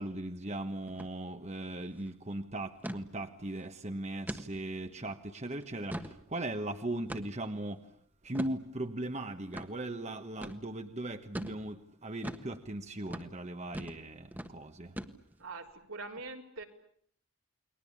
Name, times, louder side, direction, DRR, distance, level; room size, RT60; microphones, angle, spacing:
voice 1, 0.0-7.9 8.2-15.0, right 1 dB, 35° right, 7 dB, 1.3 m, -38 dB
sound 1, 0.9-1.1 1.4-1.5 1.9-2.1 2.8-3.0 3.5-3.6 4.3-4.5 5.0-5.1 5.6-6.2 7.1-7.5 8.3-8.6 9.5-9.7 10.4-10.6 11.3-11.6 12.2-12.5 13.1-13.3 13.7-14.0 14.3-14.5 15.0-15.4, equal, 10° right, 1.5 m, -40 dB
voice 2, 15.4-16.6, right 3 dB, 80° right, 2 dB, 4.2 m, -43 dB
30.0 x 21.5 x 8.6 m, 0.63 s
head